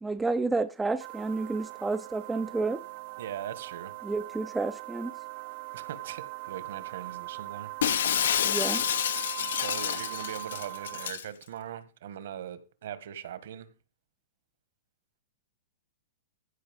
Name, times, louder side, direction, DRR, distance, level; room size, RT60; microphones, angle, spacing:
voice 1, 0.0-2.8 4.0-5.1 8.4-8.8, right 3 dB, 5° right, 0.5 m, -30 dB
sound 1, 1.0-11.1, right 23 dB, 40° right, 0.7 m, -41 dB
voice 2, 3.2-4.0 5.7-7.7 9.5-13.7, right 10 dB, 65° right, 1.7 m, -41 dB
Shatter, 7.8-11.2, left 9 dB, 75° left, 0.9 m, -29 dB
15.5 x 5.6 x 5.3 m
supercardioid pair, 165°, 0 cm